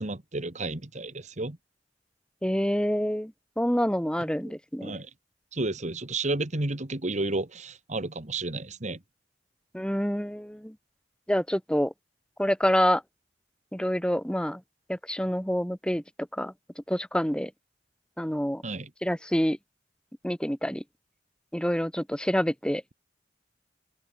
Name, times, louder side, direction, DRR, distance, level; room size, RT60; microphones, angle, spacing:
voice 1, 0.0-1.6 4.5-4.6 4.8-5.1 5.5-9.0 18.6-18.9, right 2 dB, 40° right, 1.9 m, -32 dB
voice 2, 2.4-5.0 9.7-10.7 11.3-11.9 12.4-13.0 13.7-14.6 14.9-16.0 16.4-16.5 16.9-17.5 18.2-18.6 19.0-19.6 20.2-20.8 21.5-22.9, equal, 5° left, 3.1 m, -27 dB
open air
head